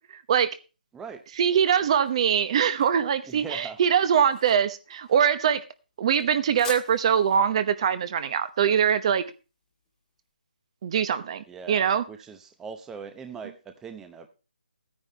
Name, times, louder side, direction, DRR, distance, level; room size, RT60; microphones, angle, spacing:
sound 1, 1.1-10.1, left 5 dB, 10° left, 1.6 m, -48 dB
voice 1, 1.4-5.6 6.0-9.2 10.8-12.0, right 8 dB, 35° right, 1.0 m, -23 dB
voice 2, 3.3-3.8 11.5-14.3, right 6 dB, 10° right, 0.8 m, -40 dB
14.0 x 9.7 x 3.4 m
figure-of-eight pair, 155°, 5 cm